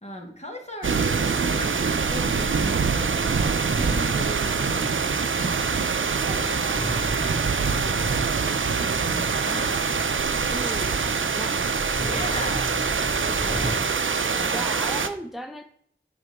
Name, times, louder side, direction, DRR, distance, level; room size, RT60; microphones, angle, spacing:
voice 1, 0.0-7.4 8.8-9.9 10.7-10.9 11.5-11.7 12.0-14.9, equal, 35° left, 2 dB, 1.9 m, -39 dB
sound 1, 0.8-15.1, right 5 dB, 85° right, 0.6 m, -24 dB
sound 2, 3.7-5.0 6.7-8.9 9.7-9.8 10.3-10.4 10.6-10.9 11.7-13.7, right 1 dB, 20° right, 2.0 m, -34 dB
voice 2, 10.5-11.0 11.3-11.6 14.5-15.6, right 1 dB, ahead, 5 dB, 0.6 m, -35 dB
8.2 x 6.1 x 3.7 m, 0.64 s
wide cardioid pair, 60°, 20 cm